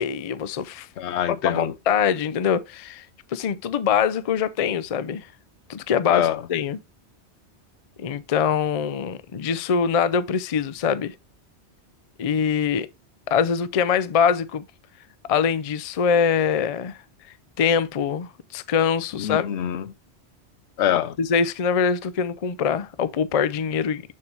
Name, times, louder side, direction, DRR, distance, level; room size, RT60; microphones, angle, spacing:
voice 1, 0.0-0.9 1.3-3.1 3.3-5.3 5.7-6.8 8.0-11.1 12.2-12.9 13.3-14.6 15.3-17.0 17.6-19.5 21.2-24.0, left 7 dB, 50° left, 0.4 m, -23 dB
voice 2, 1.0-1.7 6.1-6.4 19.2-19.8 20.8-21.2, left 10 dB, 75° left, 0.9 m, -24 dB
6.9 x 6.7 x 2.8 m
omnidirectional pair, 1.2 m